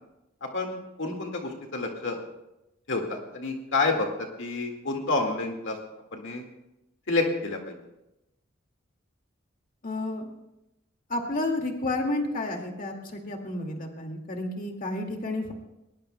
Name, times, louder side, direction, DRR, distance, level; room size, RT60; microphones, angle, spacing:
voice 1, 0.4-2.2 2.9-4.1 4.4-5.8 6.1-6.5 7.1-7.7, left 3 dB, 65° left, 2 dB, 1.9 m, -29 dB
voice 2, 9.8-10.3 11.1-15.5, left 2 dB, 45° left, 2 dB, 2.1 m, -31 dB
21.5 x 20.5 x 2.2 m, 0.92 s
head